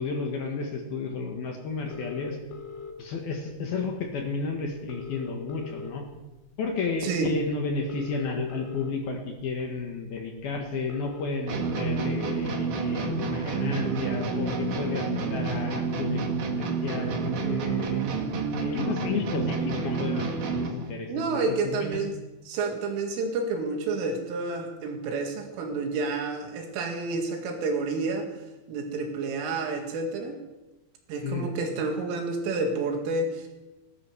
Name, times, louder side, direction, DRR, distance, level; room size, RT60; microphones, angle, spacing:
voice 1, 0.0-2.4 3.0-6.0 6.6-16.2 16.6-18.0 18.6-22.0 31.2-31.5, left 4 dB, 60° left, 2 dB, 2.9 m, -32 dB
sound 1, 1.9-2.9 4.1-4.2 4.5-4.6 4.7-6.2 6.7-6.9 7.7-8.9 9.6-9.8 10.8-11.9 13.1-13.2 13.7-14.9 15.6-15.7 16.0-16.1 16.3-16.4 16.6-17.9 18.2-20.4, left 5 dB, 75° left, 3.6 m, -40 dB
voice 2, 7.0-7.3 21.1-22.1 22.5-28.3 28.7-30.4 31.1-33.5, right 3 dB, 75° right, 3 dB, 4.5 m, -29 dB
sound 2, 11.5-20.9, right 4 dB, 55° right, 2.7 m, -29 dB
19.0 x 11.5 x 6.2 m, 1.1 s
omnidirectional pair, 6.0 m